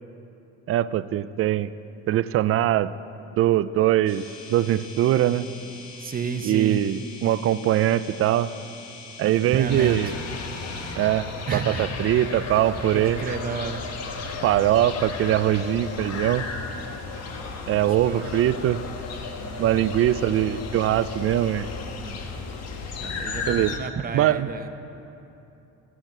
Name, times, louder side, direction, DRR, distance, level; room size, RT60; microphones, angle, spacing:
voice 1, 0.7-1.7 2.1-2.9 3.4-5.4 6.4-8.5 9.2-10.2 11.0-13.4 14.4-16.4 17.7-18.8 19.6-21.7 23.5-23.8 24.1-24.5, right 12 dB, 45° right, 15 dB, 0.4 m, -22 dB
sound 1, 4.1-11.0, left 4 dB, 85° left, 2.0 m, -43 dB
voice 2, 6.0-6.8 9.2-10.0 11.5-11.9 12.9-13.8 18.0-18.3 19.4-19.8 21.9-22.2 23.0-24.7, right 6 dB, 25° right, 7 dB, 0.8 m, -31 dB
sound 2, 9.7-23.8, left 4 dB, 50° left, 1.3 m, -34 dB
15.0 x 5.9 x 8.9 m, 2.9 s
cardioid pair, 105°, 33 cm